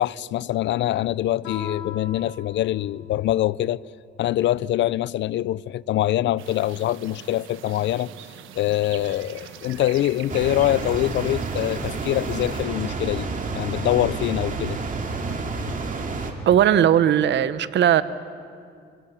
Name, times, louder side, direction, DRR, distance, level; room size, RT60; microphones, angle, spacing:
voice 1, 0.0-3.8 4.2-8.1 8.5-14.8, left 14 dB, 65° left, 0.4 m, -24 dB
Guitar, 1.4-3.9, left 6 dB, 90° left, 3.5 m, -39 dB
sound 1, 6.4-12.6, right 10 dB, 90° right, 1.1 m, -43 dB
sound 2, 10.3-16.3, right 3 dB, 40° right, 2.4 m, -29 dB
voice 2, 16.5-18.0, right 10 dB, 65° right, 0.8 m, -18 dB
24.5 x 18.5 x 5.8 m
cardioid pair, 90°, 20 cm